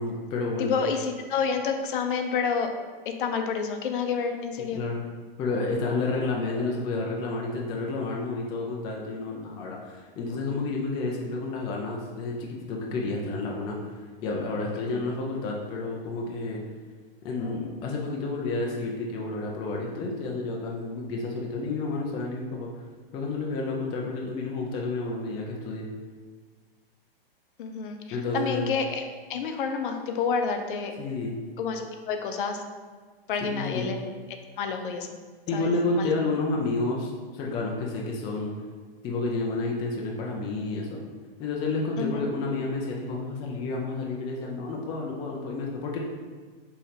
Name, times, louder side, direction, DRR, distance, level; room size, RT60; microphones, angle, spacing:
voice 1, 0.0-0.8 4.6-5.1 5.4-13.8 14.2-16.6 17.2-22.7 23.1-25.9 28.1-28.8 31.0-31.4 33.4-34.0 35.5-38.5 39.0-41.0 41.4-46.0, left 3 dB, 15° left, -1 dB, 0.3 m, -30 dB
voice 2, 0.6-2.7 3.2-4.8 14.9-15.0 27.6-28.0 28.3-29.0 29.3-30.9 31.6-32.6 33.3-34.0 34.6-35.1 35.5-36.1 42.0-42.3, left 5 dB, 60° left, 5 dB, 0.6 m, -29 dB
5.5 x 3.2 x 2.8 m, 1.5 s
hypercardioid pair, 140°, 30 cm